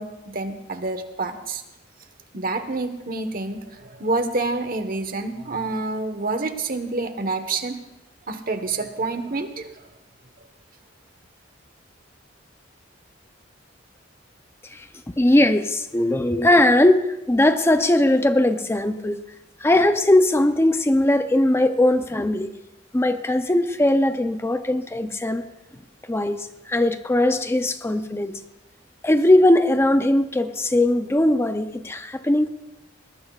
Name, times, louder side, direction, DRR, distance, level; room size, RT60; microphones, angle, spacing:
voice 1, 0.0-1.6 2.3-7.8 8.3-9.8, right 3 dB, 50° right, 8 dB, 1.2 m, -28 dB
voice 2, 15.2-19.2 19.6-22.5 22.9-25.4 26.1-28.4 29.0-32.5, left 1 dB, 15° left, 9 dB, 0.6 m, -19 dB
21.0 x 19.5 x 2.4 m, 0.96 s
head